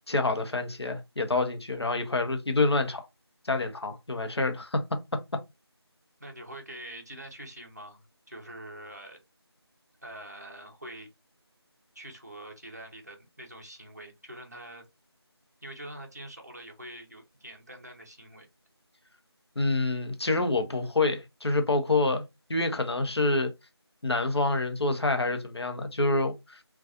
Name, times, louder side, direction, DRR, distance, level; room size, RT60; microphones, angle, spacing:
voice 1, 0.1-3.0 3.4-4.8 19.6-22.2 22.5-23.5 24.0-26.6, left 2 dB, 70° left, 0.7 m, -27 dB
voice 2, 6.2-9.2 10.0-11.1 11.9-14.9 15.6-18.5, right 1 dB, 40° right, 0.6 m, -45 dB
2.5 x 2.3 x 2.6 m
figure-of-eight pair, 180°, 14 cm